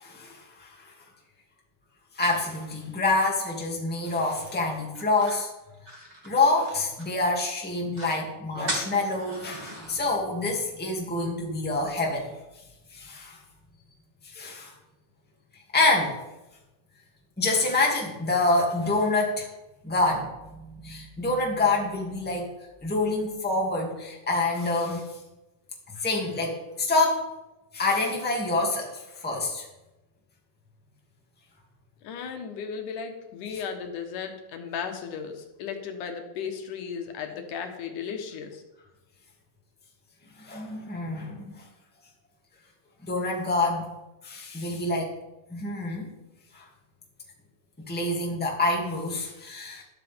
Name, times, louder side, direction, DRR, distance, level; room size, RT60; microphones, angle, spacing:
voice 1, 0.0-0.7 2.2-5.5 6.2-12.3 12.9-13.4 14.3-14.7 15.7-16.2 17.4-19.5 19.8-22.5 22.8-25.0 26.0-27.2 27.7-28.9 29.2-29.6 40.4-41.5 43.1-43.9 44.2-45.1 45.5-46.1 46.5-46.6 47.9-49.8, left 2 dB, 5° left, -2 dB, 1.9 m, -26 dB
sound 1, 4.9-7.3 7.6-7.7 7.9-8.2 8.7-10.0, equal, 15° right, 1.9 m, -37 dB
voice 2, 32.0-38.6, left 6 dB, 75° left, 4 dB, 2.7 m, -35 dB
13.0 x 12.0 x 3.6 m, 1.0 s
omnidirectional pair, 3.7 m